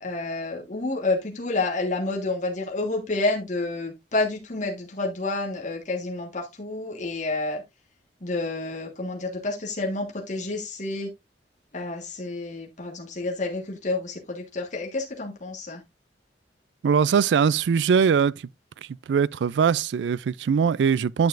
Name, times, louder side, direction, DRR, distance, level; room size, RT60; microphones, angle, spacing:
voice 1, 0.0-7.6 8.2-11.1 11.7-15.8, left 2 dB, 45° left, 1.5 m, -29 dB
voice 2, 16.8-18.4 19.1-21.3, right 6 dB, 80° right, 0.3 m, -21 dB
9.4 x 6.8 x 2.5 m
head